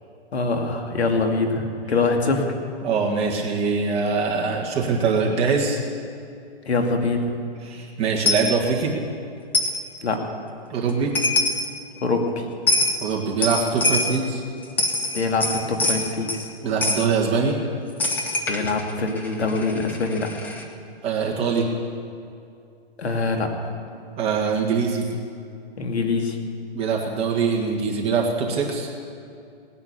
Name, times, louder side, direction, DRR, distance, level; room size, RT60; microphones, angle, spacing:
voice 1, 0.3-2.5 6.7-7.3 10.0-10.2 12.0-12.4 15.1-16.4 18.5-20.3 23.0-23.5 25.8-26.4, left 3 dB, 90° left, 3 dB, 2.4 m, -24 dB
voice 2, 2.8-5.8 7.6-9.0 10.7-11.2 13.0-14.4 16.6-17.6 21.0-21.7 24.2-25.1 26.7-28.9, right 5 dB, 20° right, -2 dB, 1.9 m, -23 dB
Coin (dropping), 8.2-8.5 9.5-9.8 10.9-11.0 11.1-11.7 12.7-13.0 13.4-14.2 14.6-16.5 16.8-17.0 18.0-20.6, left 2 dB, 5° left, 0.5 m, -24 dB
19.0 x 9.7 x 6.9 m, 2.5 s
hypercardioid pair, 155°, 32 cm